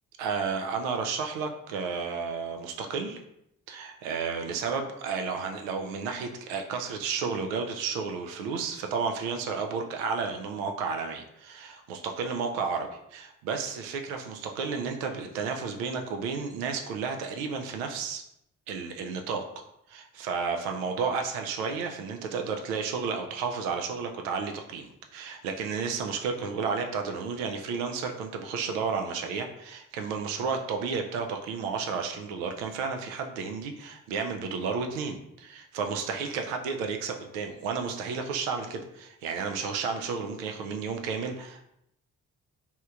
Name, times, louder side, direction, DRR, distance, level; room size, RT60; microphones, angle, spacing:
voice 1, 0.2-3.2 3.7-18.2 18.7-19.4 19.9-41.6, right 5 dB, 75° right, 4 dB, 0.5 m, -32 dB
3.1 x 2.9 x 2.4 m, 0.79 s
hypercardioid pair, 40°, 41 cm